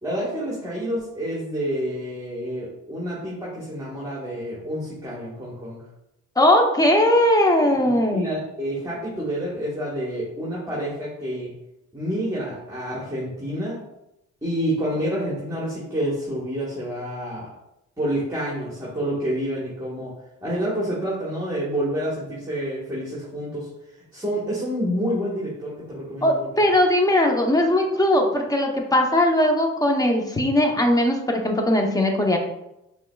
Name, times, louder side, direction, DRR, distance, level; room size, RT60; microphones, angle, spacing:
voice 1, 0.0-5.8 7.8-11.5 11.9-13.8 14.4-17.5 18.0-20.1 20.4-23.7 24.1-26.5, equal, 10° right, -6 dB, 1.3 m, -28 dB
voice 2, 6.4-8.3 26.2-32.4, left 1 dB, 10° left, 2 dB, 0.7 m, -19 dB
5.5 x 3.2 x 2.3 m, 0.88 s
cardioid pair, 90°, 30 cm